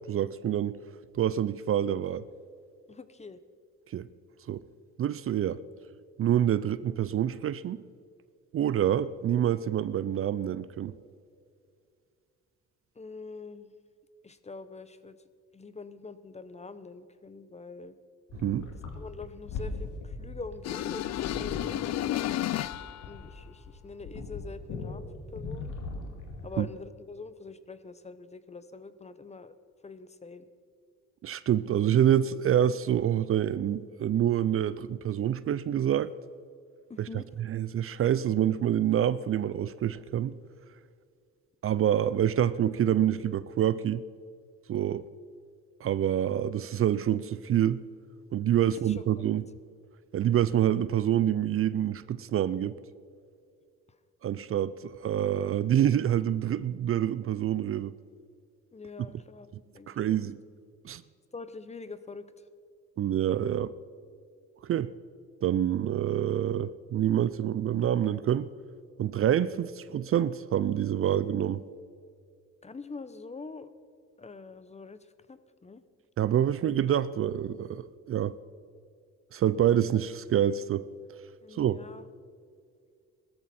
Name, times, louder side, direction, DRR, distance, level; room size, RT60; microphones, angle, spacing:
voice 1, 0.1-0.8 1.2-2.2 3.9-4.1 4.5-4.6 5.0-5.6 6.2-7.8 8.5-10.9 18.4-18.7 26.6-26.7 31.2-36.1 37.0-40.4 41.6-44.0 44.7-45.0 45.8-47.8 48.3-49.4 50.1-52.8 54.2-57.9 59.9-60.4 60.8-61.0 63.0-63.7 64.6-64.9 65.4-68.5 69.0-71.6 76.2-78.4 79.3-80.9 81.5-81.8, right 10 dB, 45° right, 0.4 m, -27 dB
voice 2, 2.9-3.4 13.0-13.7 14.2-15.2 15.5-18.0 18.9-22.2 23.1-25.0 25.3-25.7 26.4-29.5 29.8-30.5 36.9-37.2 48.6-49.0 49.2-49.3 50.4-50.6 58.7-59.5 59.7-60.2 61.3-62.3 72.6-73.7 74.2-75.0 75.3-75.8 81.4-82.0, left 4 dB, 20° left, 0.8 m, -44 dB
sound 1, 18.3-26.6, left 3 dB, 85° left, 2.3 m, -40 dB
sound 2, 20.6-23.1, left 13 dB, 60° left, 0.5 m, -32 dB
18.0 x 13.5 x 4.3 m
cardioid pair, 90°, 30 cm